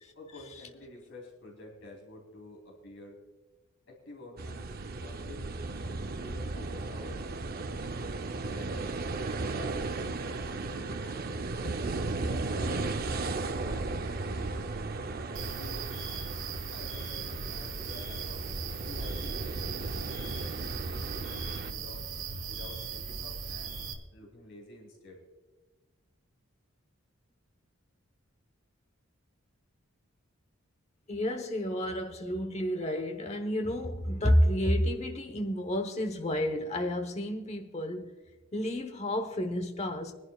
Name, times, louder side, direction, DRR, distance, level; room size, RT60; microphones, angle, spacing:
voice 1, 0.1-3.2 3.9-4.7 5.0-8.1 8.5-9.0 9.3-11.7 12.2-15.9 16.7-18.5 18.8-22.1 22.5-25.2, left 2 dB, 60° left, 3.2 m, -49 dB
sound 1, 4.4-21.7, right 3 dB, 45° right, 0.6 m, -35 dB
sound 2, 15.3-23.9, right 5 dB, 70° right, 1.6 m, -38 dB
voice 2, 31.1-38.1 38.5-40.1, equal, 30° left, 1.0 m, -30 dB
24.0 x 11.0 x 2.3 m
head